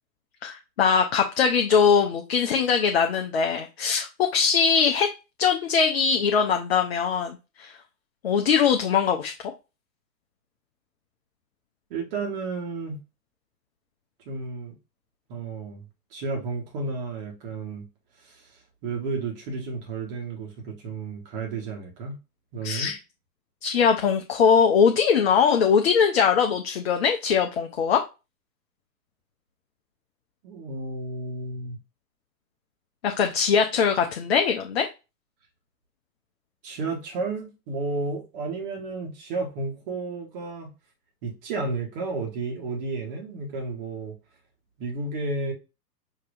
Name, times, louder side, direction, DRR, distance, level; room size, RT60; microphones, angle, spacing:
voice 1, 0.4-5.1 5.4-7.8 8.2-9.3 22.6-23.0 23.6-28.0 33.0-34.9, left 6 dB, 40° left, 0.6 m, -21 dB
voice 2, 11.9-13.0 14.2-14.7 15.3-15.8 16.1-17.8 18.2-18.4 18.8-22.2 22.5-22.9 30.4-31.8 36.6-40.7 41.2-44.1 44.8-45.5, right 3 dB, 30° right, 1.3 m, -32 dB
5.4 x 2.8 x 2.5 m
figure-of-eight pair, 120°, 50 cm